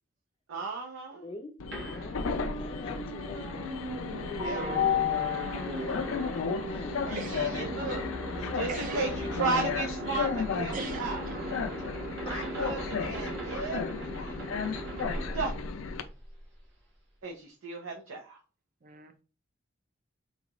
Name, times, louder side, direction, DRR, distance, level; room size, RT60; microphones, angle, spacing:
voice 1, 0.5-1.2 4.4-4.8 7.0-8.0 8.3-11.2 12.2-15.5 17.2-18.4, right 3 dB, 90° right, 0.6 m, -35 dB
voice 2, 1.2-3.7 5.5-6.1 6.6-7.1 7.6-7.7 12.3-12.6, left 2 dB, 30° left, 0.4 m, -44 dB
Train, 1.6-16.0, left 6 dB, 85° left, 0.4 m, -33 dB
sound 1, 1.7-16.4, right 1 dB, 60° right, 1.2 m, -38 dB
voice 3, 7.2-7.6 8.7-9.1 10.7-11.5 18.8-19.2, right 4 dB, 45° right, 0.4 m, -42 dB
4.0 x 2.3 x 2.9 m
head